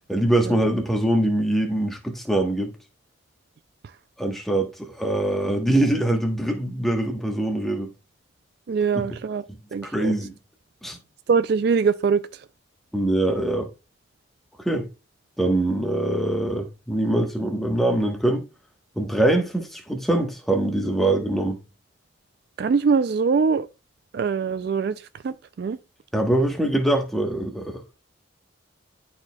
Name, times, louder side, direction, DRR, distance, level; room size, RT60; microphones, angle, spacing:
voice 1, 0.1-2.7 4.2-7.9 9.8-10.4 10.8-11.0 12.9-13.7 14.6-14.9 15.4-18.5 19.0-21.6 26.1-28.0, right 1 dB, ahead, 1.1 m, -23 dB
voice 2, 8.7-9.4 9.7-10.1 11.3-12.2 22.6-23.7 24.1-24.9 25.2-25.8, right 5 dB, 55° right, 0.3 m, -22 dB
11.5 x 4.3 x 2.3 m
head